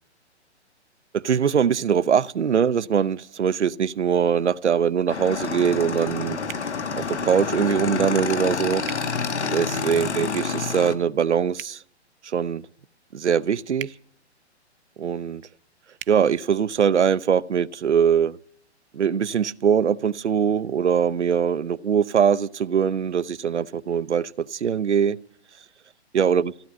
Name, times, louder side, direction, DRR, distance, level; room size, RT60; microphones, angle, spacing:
voice 1, 1.1-6.4 7.0-8.8 9.5-11.8 12.2-12.7 13.1-13.9 15.0-15.4 16.1-18.4 18.9-25.2 26.1-26.5, right 7 dB, 80° right, 0.7 m, -22 dB
Motorcycle / Engine, 5.1-10.9, left 5 dB, 75° left, 1.5 m, -28 dB
sound 1, 6.5-6.7 8.8-9.0 11.5-11.8 13.8-14.0 16.0-16.2, right 10 dB, 55° right, 0.8 m, -37 dB
16.0 x 9.2 x 8.6 m
figure-of-eight pair, 125°, 34 cm